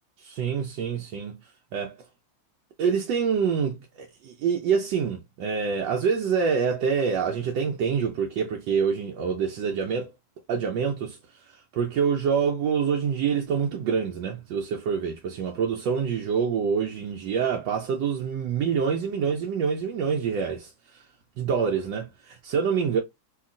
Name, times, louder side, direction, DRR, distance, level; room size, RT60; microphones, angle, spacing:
voice 1, 0.2-1.4 1.7-2.0 2.8-10.1 10.5-11.2 11.5-21.0 21.4-23.0, right 6 dB, 75° right, 1.2 m, -26 dB
2.9 x 2.8 x 2.4 m
omnidirectional pair, 2.1 m